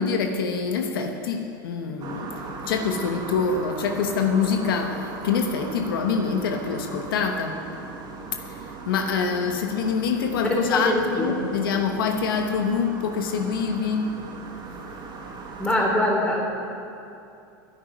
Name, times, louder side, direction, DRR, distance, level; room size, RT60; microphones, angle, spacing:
voice 1, 0.0-2.4 2.6-7.6 8.4-8.5 8.9-14.2, left 5 dB, 85° left, 5 dB, 1.1 m, -25 dB
sound 1, 2.0-15.9, right 4 dB, 40° right, 2.1 m, -38 dB
voice 2, 10.5-11.4 15.6-16.4, left 1 dB, 10° left, -2 dB, 3.9 m, -23 dB
10.5 x 9.2 x 9.8 m, 2.6 s
hypercardioid pair, 105°, 12 cm